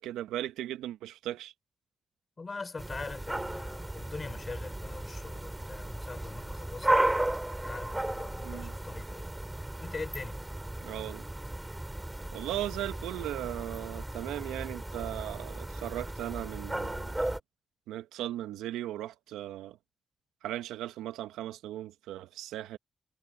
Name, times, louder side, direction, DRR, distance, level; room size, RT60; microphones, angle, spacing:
voice 1, 0.0-1.5 8.4-8.7 10.8-11.2 12.3-17.4 17.9-19.8 20.4-22.8, right 13 dB, 85° right, 1.4 m, -37 dB
voice 2, 2.4-7.0 7.6-9.3 9.8-10.4, left 4 dB, 40° left, 4.9 m, -42 dB
sound 1, 2.8-17.4, right 1 dB, 15° right, 7.0 m, -35 dB
hypercardioid pair, 40°, 0 cm